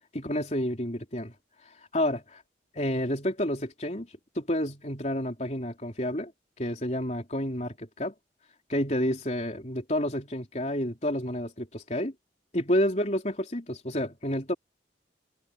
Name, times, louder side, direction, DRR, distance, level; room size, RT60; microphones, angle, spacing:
voice 1, 0.1-1.3 1.9-2.4 2.7-4.1 4.4-6.3 6.6-8.1 8.7-12.1 12.5-14.5, left 1 dB, 40° left, 4.0 m, -29 dB
head